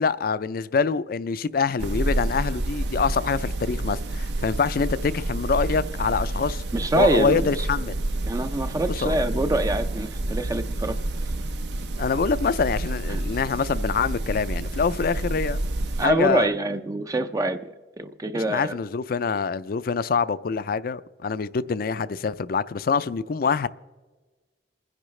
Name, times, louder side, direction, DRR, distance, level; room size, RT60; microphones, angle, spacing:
voice 1, 0.0-6.6 7.0-8.0 8.9-9.2 12.0-15.6 16.0-16.5 18.3-23.7, left 5 dB, 55° left, 16 dB, 0.4 m, -25 dB
sound 1, 1.8-16.1, right 2 dB, 70° right, 0.7 m, -29 dB
voice 2, 6.7-7.7 8.3-11.0 13.1-13.2 16.0-17.6 18.0-18.8, right 1 dB, 20° right, 9 dB, 0.4 m, -25 dB
28.5 x 10.0 x 3.2 m, 1.3 s
head